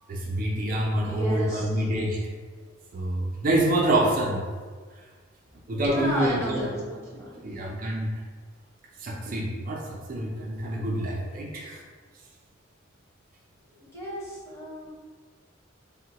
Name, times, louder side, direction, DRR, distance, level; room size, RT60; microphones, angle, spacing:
voice 1, 0.1-2.2 2.9-4.4 5.7-6.7 7.4-8.1 9.0-9.8 10.1-11.8, right 1 dB, 45° right, -3 dB, 0.4 m, -26 dB
voice 2, 1.1-1.7 5.9-7.4 13.8-14.9, equal, 15° left, -7 dB, 0.9 m, -33 dB
3.6 x 2.1 x 2.8 m, 1.5 s
head